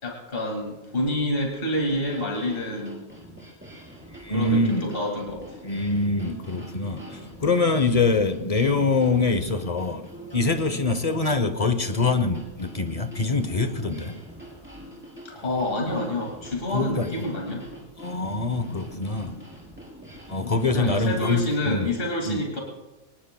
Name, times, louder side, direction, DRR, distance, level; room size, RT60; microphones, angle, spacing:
voice 1, 0.0-3.0 4.3-5.6 15.2-17.7 20.7-22.6, left 1 dB, 50° left, 2.5 m, -28 dB
sound 1, 1.9-21.7, right 1 dB, 10° right, 3.7 m, -44 dB
voice 2, 4.1-4.9 5.6-14.2 16.7-17.3 18.0-19.4 20.3-22.0 22.2-22.4, left 3 dB, 35° left, 0.9 m, -24 dB
25.0 x 19.0 x 2.3 m
omnidirectional pair, 1.2 m